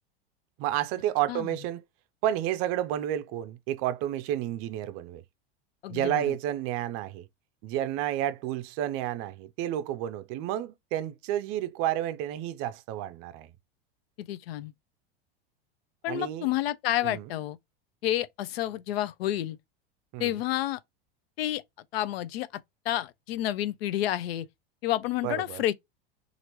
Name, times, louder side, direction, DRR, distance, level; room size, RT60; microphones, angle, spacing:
voice 1, 0.6-1.8 2.2-5.2 5.9-7.3 7.6-13.5 16.1-16.5 17.0-17.2 20.1-20.4 25.2-25.6, right 12 dB, 45° right, 0.5 m, -31 dB
voice 2, 5.8-6.3 14.2-14.7 16.0-17.6 18.0-19.6 20.2-20.8 21.4-21.6 21.9-24.5 24.8-25.7, left 13 dB, 75° left, 0.5 m, -30 dB
2.8 x 2.5 x 3.0 m
hypercardioid pair, 110°, 30 cm